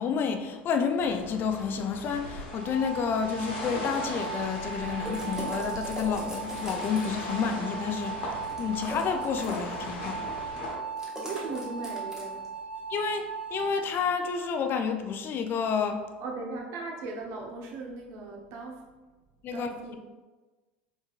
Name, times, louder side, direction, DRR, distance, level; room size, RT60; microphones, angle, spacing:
voice 1, 0.0-8.2 8.6-10.3 12.9-16.0 19.4-19.9, left 6 dB, 35° left, 6 dB, 0.4 m, -30 dB
sound 1, 1.0-10.7, left 2 dB, 60° left, 0.9 m, -40 dB
sound 2, 2.5-13.7, right 5 dB, 85° right, 0.4 m, -38 dB
sound 3, 5.0-7.3 8.4-9.8 11.0-12.5, equal, 10° right, 1.0 m, -39 dB
voice 2, 11.3-12.5 16.2-18.8 19.5-20.0, right 3 dB, 55° right, 0 dB, 0.8 m, -38 dB
4.4 x 3.4 x 2.4 m, 1.2 s
figure-of-eight pair, 75°, 6 cm